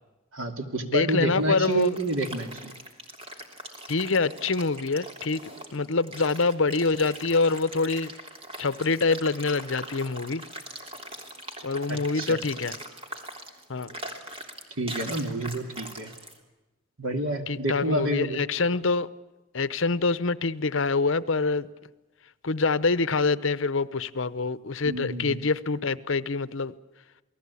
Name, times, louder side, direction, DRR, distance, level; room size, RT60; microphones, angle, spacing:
voice 1, 0.3-2.7 11.9-12.4 14.8-16.1 17.0-18.4 24.8-25.4, right 2 dB, 80° right, 2.8 m, -29 dB
voice 2, 0.8-2.0 3.9-8.1 8.6-10.4 11.6-12.8 13.7-13.9 17.5-19.1 19.5-21.7 22.4-26.7, left 4 dB, 65° left, 0.8 m, -25 dB
sound 1, 1.3-16.4, right 1 dB, 25° right, 3.2 m, -41 dB
28.0 x 19.0 x 8.5 m
head